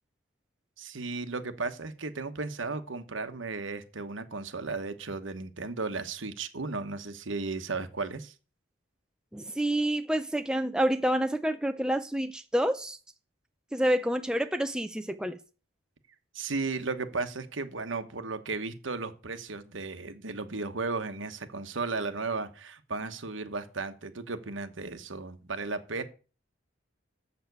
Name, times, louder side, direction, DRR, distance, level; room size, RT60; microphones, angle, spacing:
voice 1, 0.8-8.3 16.3-26.0, right 3 dB, 80° right, 9 dB, 1.2 m, -35 dB
voice 2, 9.3-13.0 13.7-15.4, right 1 dB, 5° right, 8 dB, 0.5 m, -28 dB
7.3 x 6.9 x 8.2 m, 0.37 s
head